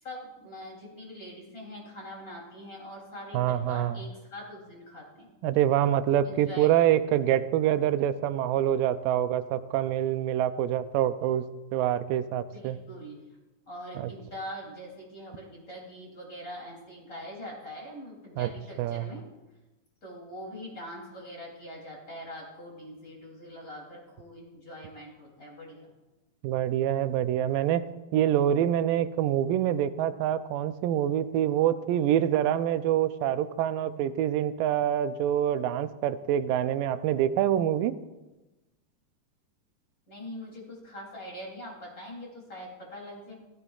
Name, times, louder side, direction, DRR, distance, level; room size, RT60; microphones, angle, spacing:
voice 1, 0.0-5.3 6.2-6.9 12.5-13.3 13.7-19.2 20.0-25.9 40.1-43.4, equal, 25° left, -2 dB, 3.3 m, -43 dB
voice 2, 3.3-4.0 5.4-11.4 11.7-12.8 14.0-14.1 18.4-18.5 18.8-19.1 26.4-27.9 28.1-38.0, right 11 dB, 80° right, 11 dB, 2.1 m, -26 dB
16.0 x 13.5 x 2.4 m, 1.1 s
omnidirectional pair, 4.1 m